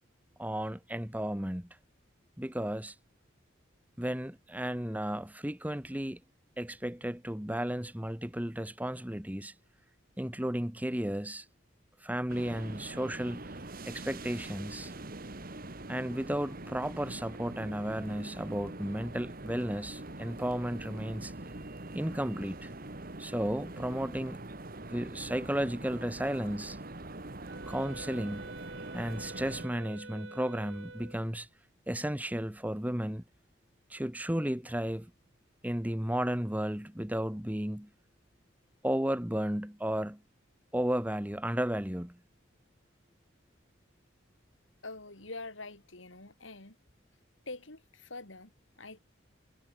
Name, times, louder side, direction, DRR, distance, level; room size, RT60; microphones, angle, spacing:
voice 1, 0.4-1.7 2.4-2.9 4.0-6.2 6.6-9.5 10.2-11.4 12.0-13.4 13.9-14.9 15.9-21.3 21.9-22.7 23.2-24.4 24.9-26.8 27.6-28.5 28.9-31.5 31.9-33.2 33.9-35.1 35.6-37.9 38.8-40.2 40.7-42.2, equal, 10° right, 1.4 m, -33 dB
sound 1, 12.3-29.7, right 2 dB, 45° right, 1.9 m, -44 dB
Wind instrument woodwind instrument, 27.5-31.3, right 3 dB, 65° right, 6.9 m, -47 dB
voice 2, 44.8-46.8 47.5-49.0, left 3 dB, 70° left, 4.3 m, -45 dB
head